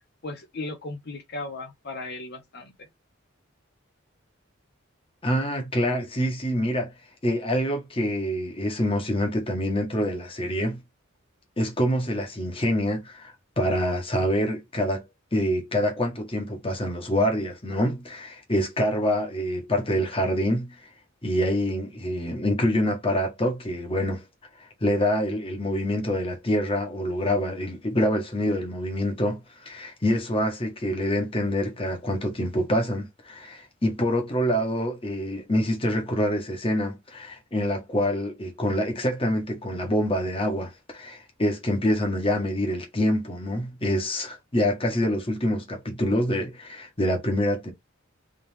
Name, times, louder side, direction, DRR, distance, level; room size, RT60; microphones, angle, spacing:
voice 1, 0.2-2.9, left 2 dB, 55° left, 1.1 m, -36 dB
voice 2, 5.2-6.9 7.2-10.8 11.6-15.0 15.3-20.7 21.2-24.2 24.8-47.7, equal, 30° left, 1.4 m, -26 dB
3.8 x 3.5 x 3.4 m
head